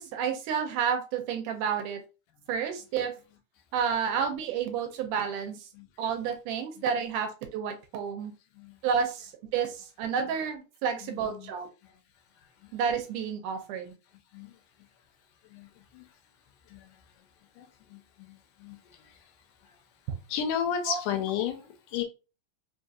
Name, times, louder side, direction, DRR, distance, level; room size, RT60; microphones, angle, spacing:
voice 1, 0.0-2.0 2.5-3.1 3.7-5.6 6.0-8.3 8.8-11.7 12.7-13.9 20.9-21.0, right 7 dB, 80° right, 2.2 m, -30 dB
voice 2, 11.0-11.5 11.8-12.0 12.3-12.8 14.3-14.9 15.4-16.2 16.6-17.3 17.5-20.0 20.3-22.0, left 8 dB, 85° left, 2.3 m, -36 dB
5.1 x 2.7 x 2.4 m
omnidirectional pair, 3.7 m